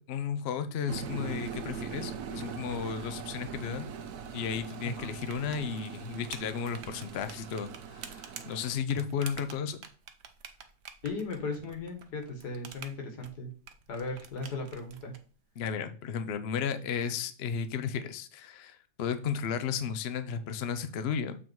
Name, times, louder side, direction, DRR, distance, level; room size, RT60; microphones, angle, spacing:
voice 1, 0.0-3.9 4.3-9.8 15.6-21.4, left 7 dB, 60° left, 10 dB, 0.7 m, -34 dB
sound 1, 0.9-8.8, right 7 dB, 75° right, 1.2 m, -41 dB
sound 2, 5.2-15.2, right 7 dB, 50° right, 0.8 m, -48 dB
voice 2, 11.0-13.5 13.9-15.1, left 3 dB, 75° left, 4 dB, 2.1 m, -37 dB
7.4 x 3.7 x 4.6 m, 0.39 s
omnidirectional pair, 1.7 m